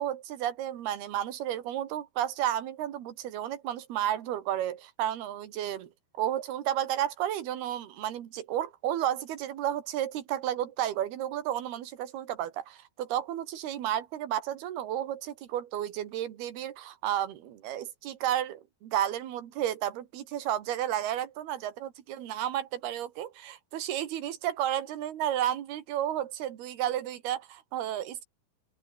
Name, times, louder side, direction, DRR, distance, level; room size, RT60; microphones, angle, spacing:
voice 1, 0.0-5.9 6.2-28.3, right 11 dB, 80° right, 4.0 m, -32 dB
open air
omnidirectional pair, 4.5 m